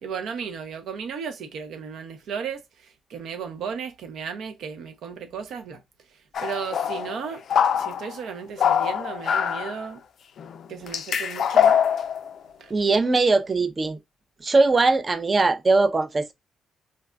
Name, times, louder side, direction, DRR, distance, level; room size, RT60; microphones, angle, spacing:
voice 1, 0.0-2.6 3.1-5.8 6.4-7.4 7.7-10.0 10.7-11.8 12.6-12.7, right 6 dB, 70° right, 0.6 m, -34 dB
sound 1, 6.3-8.1 8.6-9.8 10.4-10.6 10.9-12.3, left 8 dB, 60° left, 0.3 m, -23 dB
voice 2, 12.7-14.0 14.4-16.3, right 3 dB, 30° right, 0.5 m, -20 dB
3.9 x 2.2 x 2.2 m
cardioid pair, 90°, 0 cm